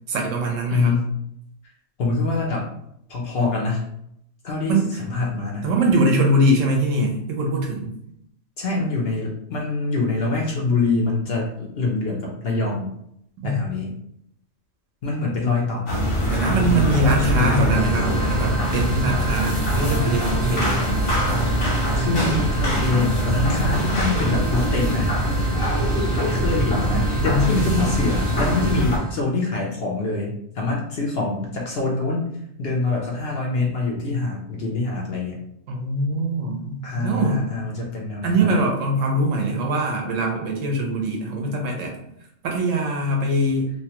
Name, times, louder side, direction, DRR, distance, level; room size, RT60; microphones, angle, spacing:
voice 1, 0.1-0.9 4.7-5.0 5.6-7.9 13.4-13.6 16.3-20.9 27.2-28.0 35.7-37.4 38.2-42.0 42.4-43.7, right 1 dB, 75° right, 1 dB, 1.0 m, -22 dB
voice 2, 0.7-1.1 2.0-2.7 3.1-3.9 4.4-5.7 8.6-12.9 13.4-13.9 15.0-16.0 16.6-18.3 21.9-25.1 26.1-35.4 36.8-38.6, left 3 dB, 60° left, -2 dB, 0.7 m, -25 dB
sound 1, 15.9-29.0, right 1 dB, 80° left, 1.3 m, -22 dB
sound 2, 17.7-29.1, right 3 dB, 35° right, 0.7 m, -37 dB
2.9 x 2.3 x 2.8 m, 0.75 s
omnidirectional pair, 1.4 m